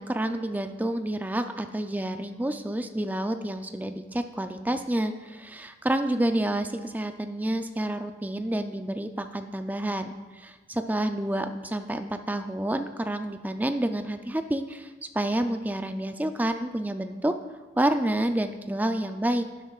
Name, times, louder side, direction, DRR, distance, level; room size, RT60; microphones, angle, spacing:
voice 1, 0.0-17.4 17.8-19.5, right 1 dB, 10° right, 8 dB, 0.4 m, -29 dB
11.0 x 11.0 x 2.4 m, 1.3 s
head